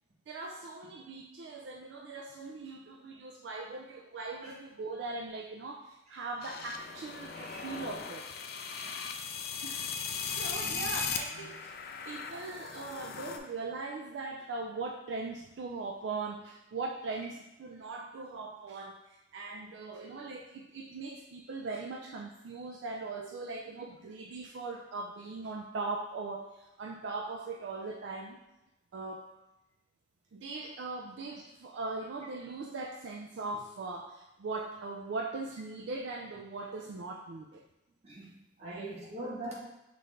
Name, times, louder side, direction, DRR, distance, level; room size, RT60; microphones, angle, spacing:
voice 1, 0.3-8.3 9.6-9.9 10.3-11.7 12.1-28.4 28.9-29.3 30.3-37.6 38.6-38.9, right 3 dB, 75° right, 1 dB, 0.4 m, -40 dB
sound 1, 6.4-13.4, left 6 dB, 55° left, 0.4 m, -38 dB
voice 2, 8.7-9.1 10.6-10.9 11.3-11.6 12.3-12.4 38.0-39.6, right 1 dB, 35° right, -5 dB, 1.1 m, -44 dB
5.8 x 2.5 x 3.2 m, 0.96 s
head